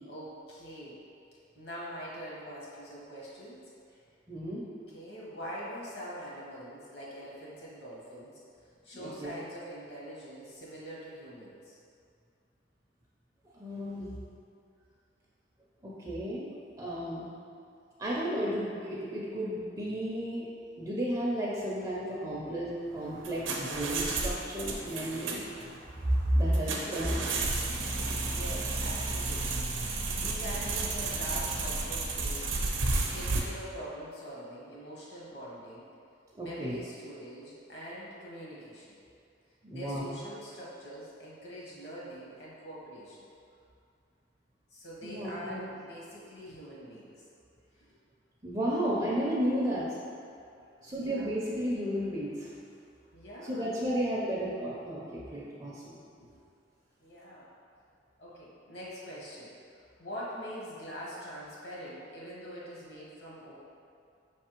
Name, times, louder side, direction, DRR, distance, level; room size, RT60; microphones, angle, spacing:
voice 1, 0.1-1.0 1.5-3.6 4.9-8.4 8.8-11.8 26.6-27.2 28.2-32.7 33.1-35.8 36.4-39.0 39.7-43.3 44.7-47.2 50.2-51.4 53.1-54.4 55.0-55.1 56.2-56.3 57.0-57.5 58.2-63.6, equal, 60° left, -6 dB, 1.1 m, -44 dB
voice 2, 4.3-4.6 8.9-9.3 13.6-14.1 15.8-16.5 16.8-17.3 18.0-20.5 20.8-25.4 26.1-27.2 28.0-28.3 36.4-36.8 39.6-40.1 45.0-45.6 48.4-49.9 50.8-52.5 53.4-56.0, equal, 20° right, -6 dB, 0.4 m, -32 dB
sound 1, 23.0-33.4, right 3 dB, 85° right, 0.6 m, -32 dB
5.1 x 3.3 x 3.0 m, 2.4 s
head